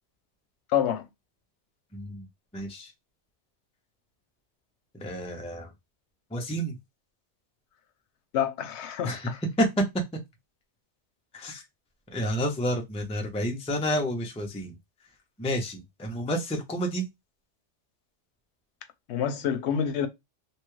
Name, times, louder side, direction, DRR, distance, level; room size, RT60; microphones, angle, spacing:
voice 1, 0.7-1.1 8.3-9.4 19.1-20.1, left 9 dB, 75° left, 0.8 m, -27 dB
voice 2, 1.9-2.3 2.5-2.9 5.0-5.7 6.3-6.7 9.0-9.7 11.3-11.6 12.1-14.7 15.4-17.1, equal, 10° left, 0.3 m, -30 dB
3.0 x 2.3 x 3.0 m
omnidirectional pair, 1.2 m